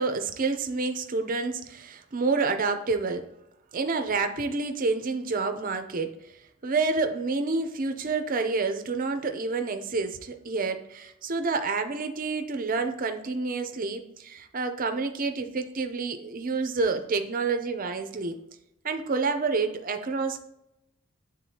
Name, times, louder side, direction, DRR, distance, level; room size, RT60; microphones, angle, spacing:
voice 1, 0.0-3.2 3.7-6.1 6.6-18.4 18.8-20.4, right 4 dB, 40° right, 7 dB, 0.5 m, -28 dB
9.2 x 3.7 x 2.8 m, 0.85 s
head